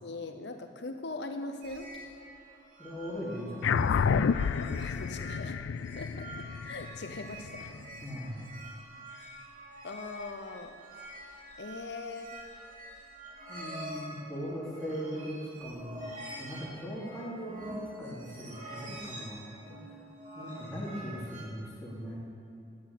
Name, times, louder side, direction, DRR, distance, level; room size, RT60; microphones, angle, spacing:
voice 1, 0.0-1.9 4.8-5.6 6.0-6.3 6.6-7.8 9.1-9.3 9.8-10.8 11.6-12.4, left 3 dB, 65° left, 7 dB, 0.7 m, -41 dB
sound 1, 1.6-21.4, right 1 dB, 45° right, 2.7 m, -47 dB
voice 2, 2.8-4.3 8.0-8.4 13.5-19.9 20.3-22.2, equal, ahead, -9 dB, 2.8 m, -39 dB
sound 2, 3.6-8.4, left 6 dB, 85° left, 0.3 m, -30 dB
10.5 x 8.7 x 8.5 m, 2.6 s
head